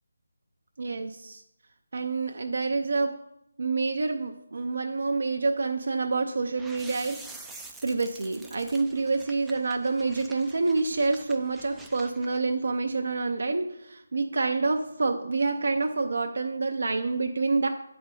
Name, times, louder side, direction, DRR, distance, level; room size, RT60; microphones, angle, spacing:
voice 1, 0.8-1.4 1.9-3.1 3.6-7.2 7.8-17.7, right 3 dB, 60° right, 4 dB, 0.5 m, -27 dB
sound 1, 6.6-12.4, right 3 dB, 5° right, 0.4 m, -47 dB
8.0 x 4.0 x 4.8 m, 0.82 s
figure-of-eight pair, 160°, 0 cm